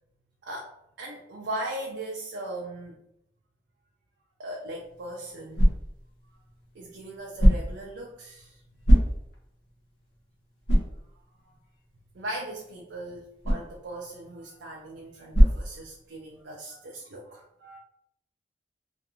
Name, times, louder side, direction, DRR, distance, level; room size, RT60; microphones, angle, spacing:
voice 1, 1.0-3.0 4.4-5.7 6.7-8.6 12.1-17.8, right 1 dB, 80° right, -1 dB, 0.4 m, -38 dB
sound 1, 4.7-16.4, equal, 90° left, 0.9 m, -27 dB
2.5 x 2.4 x 2.7 m, 0.78 s
head